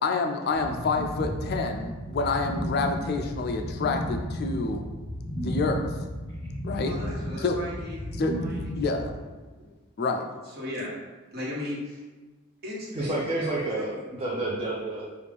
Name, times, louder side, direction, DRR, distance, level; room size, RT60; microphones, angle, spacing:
voice 1, 0.0-4.8 5.4-5.8 6.6-6.9 7.4-7.6 8.2-8.3 8.8-9.1 10.0-10.3, left 3 dB, 45° left, 4 dB, 0.3 m, -28 dB
sound 1, 0.5-9.1, equal, 20° left, 0.9 m, -33 dB
voice 2, 6.8-8.7 9.2-9.3 9.6-9.7 10.4-10.9 11.3-12.0 12.6-14.1, left 1 dB, 45° right, -5 dB, 1.2 m, -37 dB
voice 3, 12.9-15.0, right 2 dB, 25° right, -5 dB, 0.5 m, -29 dB
4.8 x 2.4 x 3.4 m, 1.3 s
head